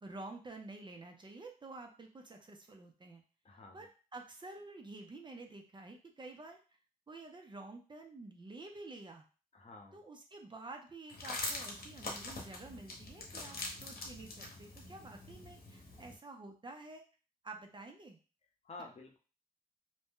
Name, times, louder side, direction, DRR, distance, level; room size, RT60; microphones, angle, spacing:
voice 1, 0.0-3.2 3.7-3.9 4.1-6.6 7.1-9.2 9.9-17.0 17.4-18.2, right 2 dB, 30° right, 3 dB, 0.5 m, -50 dB
voice 2, 3.4-3.9 9.5-10.0 18.6-19.2, left 2 dB, 45° left, 1 dB, 0.7 m, -50 dB
sound 1, 11.1-16.2, left 2 dB, 75° left, 0.8 m, -44 dB
2.6 x 2.1 x 3.5 m, 0.35 s
wide cardioid pair, 100°, 15 cm